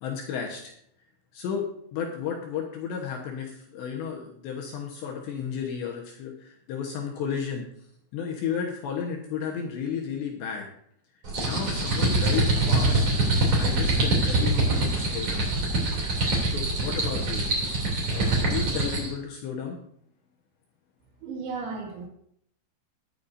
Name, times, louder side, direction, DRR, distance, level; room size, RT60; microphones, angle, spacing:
voice 1, 0.0-0.7 1.3-7.6 8.1-10.7 11.4-13.1 13.6-15.5 16.5-17.5 18.1-19.8, left 7 dB, 70° left, 0 dB, 3.1 m, -33 dB
sound 1, 11.2-19.1, right 2 dB, 35° right, 3.2 m, -24 dB
voice 2, 21.2-22.1, right 4 dB, 85° right, -1 dB, 4.9 m, -34 dB
21.0 x 8.5 x 2.7 m, 0.69 s
omnidirectional pair, 6.0 m